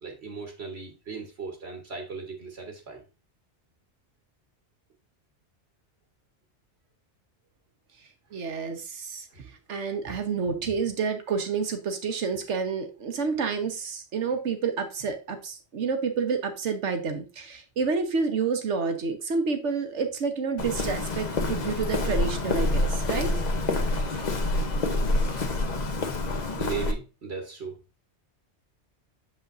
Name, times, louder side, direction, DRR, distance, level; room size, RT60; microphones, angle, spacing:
voice 1, 0.0-3.0 9.3-9.5 26.5-27.8, right 5 dB, 65° right, 1.5 m, -37 dB
voice 2, 8.3-23.4, right 5 dB, 85° right, 1.4 m, -29 dB
Walk footsteps, 20.6-26.9, left 2 dB, 40° left, 0.9 m, -27 dB
6.9 x 5.7 x 2.6 m
omnidirectional pair, 1.2 m